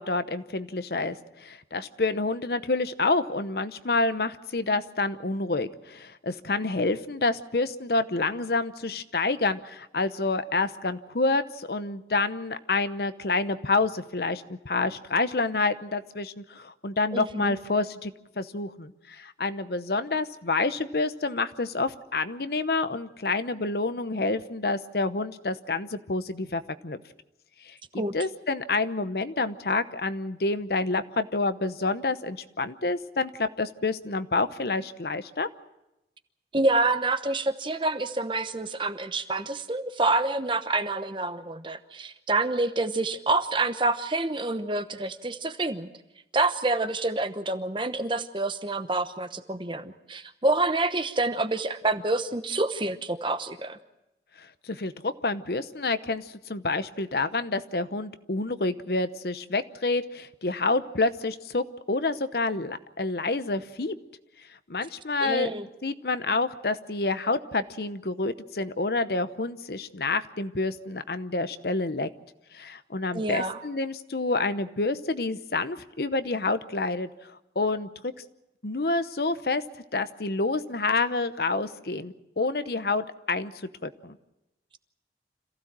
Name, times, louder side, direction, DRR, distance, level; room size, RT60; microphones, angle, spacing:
voice 1, 0.0-27.0 27.6-35.5 54.4-64.0 64.7-65.5 65.8-72.1 72.5-77.9 78.6-79.6 79.9-84.2, left 3 dB, 60° left, 12 dB, 0.9 m, -28 dB
voice 2, 17.1-17.5 28.0-28.1 36.5-45.9 46.3-53.8 65.2-65.7 73.1-73.6, right 2 dB, 30° right, 10 dB, 0.9 m, -27 dB
26.5 x 15.5 x 7.5 m, 0.92 s
head